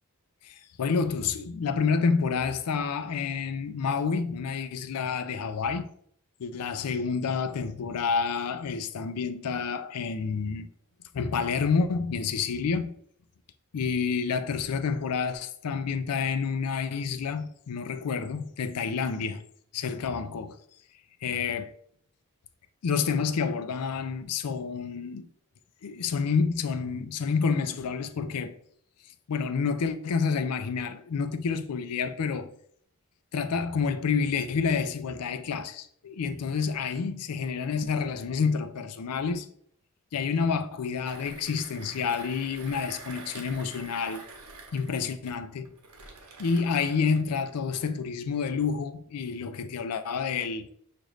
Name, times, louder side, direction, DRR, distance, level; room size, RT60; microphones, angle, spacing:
voice 1, 0.4-5.9 6.4-10.7 11.1-12.9 13.7-19.4 19.7-20.6 21.2-21.7 22.8-25.3 25.8-28.6 29.3-32.5 33.3-39.5 40.1-44.2 44.7-45.7 46.4-50.7, left 5 dB, 85° left, 0.4 m, -29 dB
Mechanisms, 41.0-47.3, right 3 dB, 75° right, 0.9 m, -47 dB
6.3 x 2.5 x 3.1 m
head